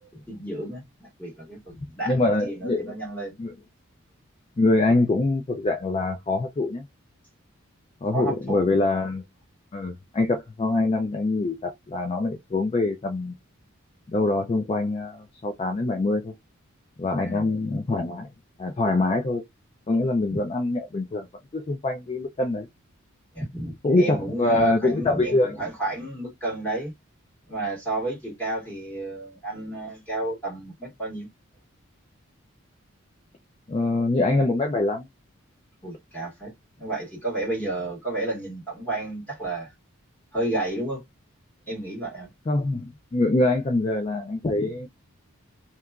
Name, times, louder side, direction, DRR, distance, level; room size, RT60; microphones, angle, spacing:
voice 1, 0.0-2.2 2.4-3.4 8.1-8.7 17.2-17.5 23.3-26.9 27.5-31.3 35.8-39.7 40.3-41.0 41.7-42.3, right 2 dB, 10° left, 1.6 m, -31 dB
voice 2, 2.1-3.0 3.4-3.5 4.6-6.8 8.0-9.2 9.7-13.3 14.1-16.3 17.0-18.3 18.6-19.4 19.9-21.3 21.5-22.7 23.8-25.6 33.7-35.1 42.5-44.9, left 2 dB, 25° left, 0.3 m, -24 dB
2.8 x 2.3 x 2.2 m
head